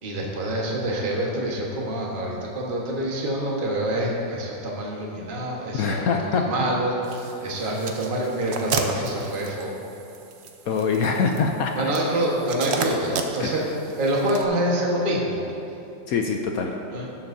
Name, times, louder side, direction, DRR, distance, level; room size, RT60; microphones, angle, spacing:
voice 1, 0.0-9.7 11.8-15.4 16.9-17.1, right 1 dB, 30° right, -3 dB, 1.3 m, -26 dB
voice 2, 5.7-6.4 10.7-11.7 13.4-13.5 16.1-16.7, left 5 dB, 70° left, 3 dB, 0.8 m, -23 dB
sound 1, 7.0-14.5, right 4 dB, 75° right, 0.6 m, -34 dB
19.0 x 7.1 x 2.7 m, 2.9 s
omnidirectional pair, 2.0 m